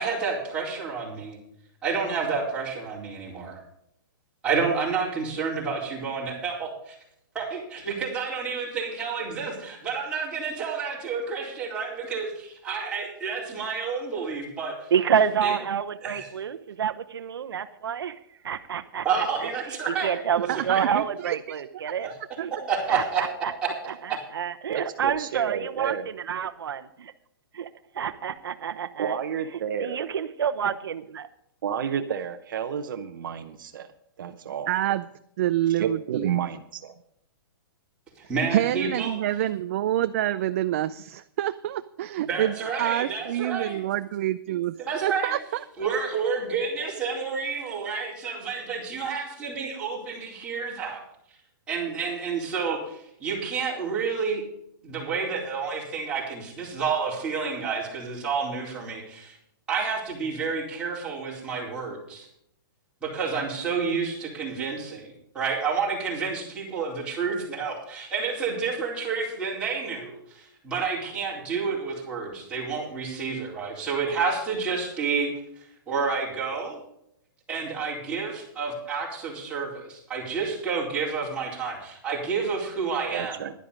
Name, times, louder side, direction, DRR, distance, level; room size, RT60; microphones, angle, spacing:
voice 1, 0.0-1.4 1.8-3.6 4.4-7.0 7.3-14.9 15.4-15.5 16.0-16.3 19.0-20.1 20.5-20.8 22.0-22.1 22.7-23.2 24.1-24.2 38.3-39.2 42.2-43.9 44.5-45.4 45.8-51.0 51.7-54.4 54.8-59.4 59.7-62.3 63.0-76.8 77.5-83.4, right 5 dB, 10° right, -6 dB, 4.2 m, -30 dB
voice 2, 14.9-18.2 18.4-19.5 20.0-22.1 22.4-22.5 22.9-23.5 23.9-27.1 27.5-27.7 27.9-29.2 29.8-31.3, right 8 dB, 85° right, 10 dB, 0.9 m, -28 dB
voice 3, 20.5-21.4 22.4-22.5 34.7-35.1 35.4-36.3 38.5-44.8 45.0-45.6, right 13 dB, 35° right, 11 dB, 0.4 m, -27 dB
voice 4, 24.7-26.1 29.0-30.1 31.6-33.9 34.2-34.7 35.7-36.9 83.1-83.5, right 8 dB, 60° right, 8 dB, 0.9 m, -30 dB
11.5 x 11.0 x 5.1 m, 0.75 s
hypercardioid pair, 165°, 12 cm